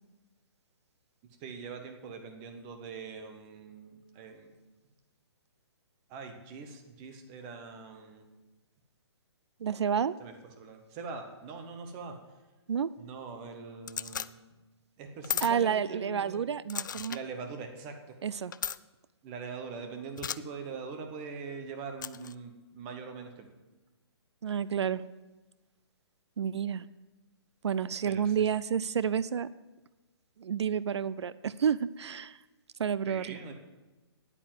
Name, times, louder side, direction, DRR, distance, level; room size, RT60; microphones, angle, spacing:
voice 1, 1.4-4.5 6.1-8.3 10.2-12.2 13.0-14.4 15.0-16.5 17.1-18.2 19.2-23.5 28.1-28.4 33.1-33.5, right 5 dB, 15° right, 5 dB, 0.9 m, -43 dB
voice 2, 9.6-10.2 12.7-12.9 15.4-17.2 18.2-18.5 24.4-25.0 26.4-26.9 27.6-29.5 30.4-32.4 32.8-33.4, right 7 dB, 80° right, 17 dB, 0.5 m, -30 dB
sound 1, 13.9-14.3 15.2-15.5 16.7-17.2 18.5-18.8 20.2-20.4 22.0-22.4, left 8 dB, 45° left, 0.4 m, -35 dB
10.0 x 8.9 x 7.5 m, 1.1 s
hypercardioid pair, 170°, 14 cm